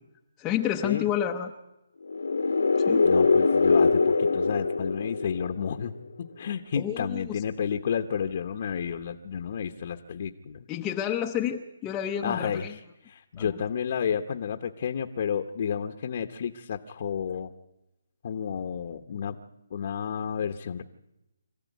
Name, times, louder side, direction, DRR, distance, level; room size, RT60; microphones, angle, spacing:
voice 1, 0.4-1.5 2.8-3.1 6.8-7.4 10.7-12.7 13.4-13.5, left 10 dB, 15° left, 2 dB, 0.8 m, -30 dB
sound 1, 2.1-5.9, left 4 dB, 85° left, 1.6 m, -23 dB
voice 2, 3.0-10.7 12.2-12.8 13.0-17.5 18.2-19.4 19.7-20.8, left 7 dB, 40° left, 6 dB, 1.0 m, -31 dB
25.5 x 14.5 x 9.4 m, 0.94 s
hypercardioid pair, 165°, 0 cm